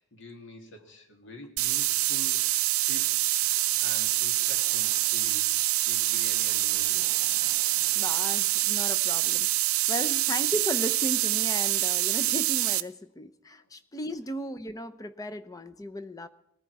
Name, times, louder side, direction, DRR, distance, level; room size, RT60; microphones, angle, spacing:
voice 1, 0.0-5.5 5.9-7.0 10.1-10.2, left 1 dB, 55° left, 3 dB, 2.5 m, -46 dB
sound 1, 1.6-12.8, right 16 dB, 70° right, 0.6 m, -26 dB
sound 2, 3.4-8.6, left 1 dB, 35° left, 3.1 m, -53 dB
voice 2, 7.9-16.3, equal, 15° left, 9 dB, 0.7 m, -36 dB
20.0 x 14.0 x 4.8 m, 0.76 s
head